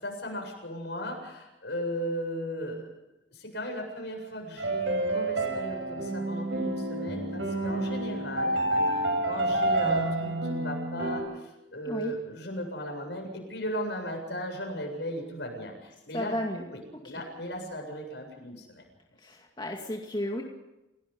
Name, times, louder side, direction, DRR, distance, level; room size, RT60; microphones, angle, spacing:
voice 1, 0.0-2.9 3.3-8.6 8.9-16.3 16.7-18.8, equal, 70° left, 2 dB, 7.7 m, -36 dB
sound 1, 4.6-11.2, right 2 dB, 80° right, 6.6 m, -29 dB
voice 2, 16.1-16.7 17.1-17.2 19.2-20.4, left 1 dB, 25° left, 0 dB, 2.2 m, -33 dB
29.0 x 18.0 x 5.5 m, 0.96 s
head